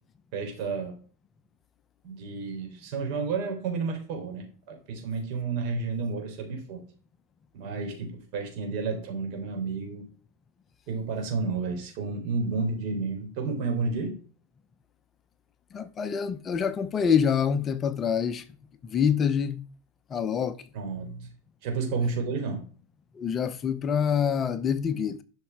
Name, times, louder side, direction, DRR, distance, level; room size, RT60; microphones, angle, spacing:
voice 1, 0.3-1.0 2.0-6.8 7.5-10.1 10.9-14.2 20.7-21.3 21.6-22.6, right 4 dB, 55° right, 3.7 m, -31 dB
voice 2, 15.7-18.5 18.8-19.6 20.1-20.6 23.1-25.2, left 7 dB, 25° left, 0.7 m, -26 dB
11.5 x 5.8 x 4.7 m
supercardioid pair, 130°, 0 cm